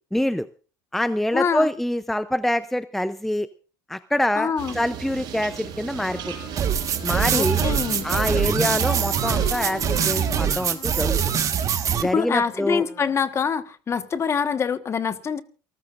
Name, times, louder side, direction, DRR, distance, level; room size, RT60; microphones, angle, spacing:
voice 1, 0.1-0.5 0.9-3.5 3.9-6.3 7.0-7.6 8.0-11.2 12.0-12.8, left 1 dB, 5° left, 0.6 m, -25 dB
voice 2, 1.3-1.7 4.4-4.8 7.3-8.1 12.1-15.4, left 6 dB, 35° left, 1.3 m, -25 dB
sound 1, 4.6-10.5, right 8 dB, 65° right, 4.8 m, -35 dB
sound 2, 6.0-13.3, left 7 dB, 55° left, 6.0 m, -41 dB
sound 3, 6.6-12.0, right 8 dB, 45° right, 1.5 m, -23 dB
28.5 x 14.0 x 2.5 m
supercardioid pair, 95°, 8 cm